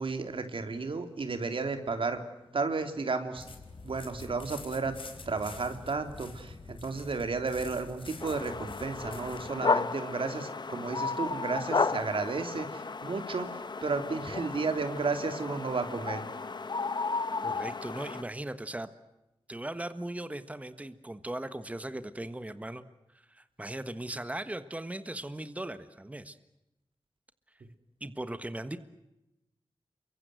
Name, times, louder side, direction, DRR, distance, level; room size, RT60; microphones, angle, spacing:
voice 1, 0.0-2.2 2.5-3.5 3.8-5.0 5.3-16.2, right 4 dB, 75° right, 7 dB, 3.2 m, -33 dB
sound 1, 3.4-9.5, left 4 dB, 75° left, 4.4 m, -46 dB
sound 2, 8.2-18.2, left 4 dB, 55° left, 1.1 m, -33 dB
voice 2, 17.4-18.9 19.5-22.8 23.1-26.4 28.0-28.8, right 1 dB, 15° right, 11 dB, 1.4 m, -38 dB
29.0 x 24.0 x 7.9 m, 0.94 s
wide cardioid pair, 100°, 9 cm